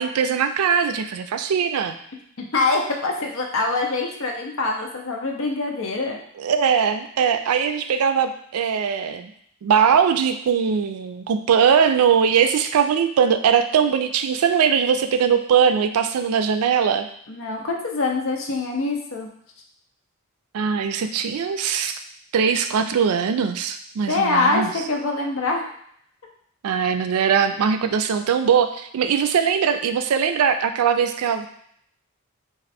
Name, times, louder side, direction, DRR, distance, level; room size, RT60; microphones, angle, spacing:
voice 1, 0.0-2.0 6.4-9.3 9.6-17.1 20.5-22.0 22.3-24.7 26.6-31.5, right 7 dB, 90° right, 9 dB, 0.4 m, -20 dB
voice 2, 2.4-6.2 17.3-19.3 24.1-25.7, left 3 dB, 65° left, 1 dB, 0.6 m, -24 dB
3.1 x 2.4 x 4.2 m, 0.67 s
head